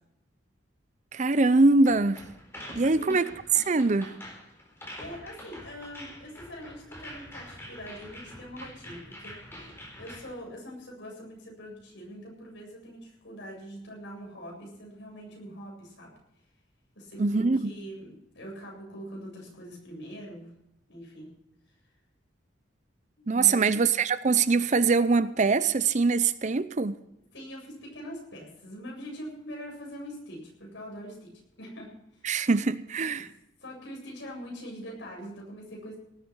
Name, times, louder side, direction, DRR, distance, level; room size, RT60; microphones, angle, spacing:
voice 1, 1.1-2.2 2.8-3.3 3.7-4.1 17.2-17.7 23.3-26.9 32.2-33.3, right 3 dB, 40° right, 0.6 m, -23 dB
sound 1, 1.8-10.3, left 1 dB, 15° left, 4.2 m, -46 dB
voice 2, 2.8-3.1 5.0-16.1 16.9-20.5 20.9-21.3 23.2-23.7 27.3-31.3 31.6-32.3 33.1-33.2 33.6-36.0, equal, 70° left, 7.9 m, -43 dB
18.5 x 9.2 x 6.2 m
head